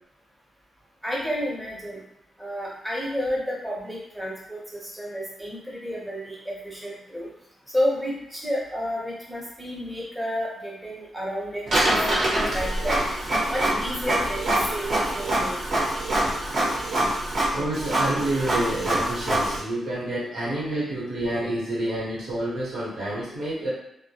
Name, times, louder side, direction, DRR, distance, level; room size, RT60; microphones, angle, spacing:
voice 1, 1.0-2.0 2.4-7.3 7.7-13.0 13.5-15.6, equal, 5° right, -5 dB, 0.7 m, -31 dB
Printer, 11.7-19.6, right 1 dB, 45° right, 0.8 m, -25 dB
voice 2, 17.5-23.7, right 1 dB, 90° right, -7 dB, 1.0 m, -28 dB
2.1 x 2.1 x 2.8 m, 0.82 s
wide cardioid pair, 135°, 0 cm